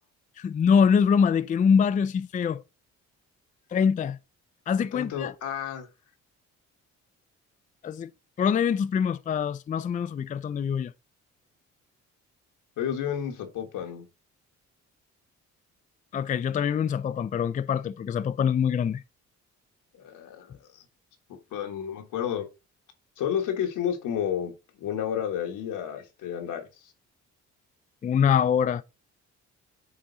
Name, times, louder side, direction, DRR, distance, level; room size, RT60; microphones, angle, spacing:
voice 1, 0.4-2.6 3.7-4.2 4.7-5.3 7.8-8.1 8.4-10.9 16.1-19.0 28.0-28.8, left 7 dB, 25° left, 0.3 m, -24 dB
voice 2, 4.9-5.9 12.8-14.1 19.9-20.8 21.5-22.5 23.2-24.5 24.8-26.7, left 9 dB, 85° left, 1.4 m, -31 dB
8.6 x 3.0 x 3.9 m
cardioid pair, 90°, 30 cm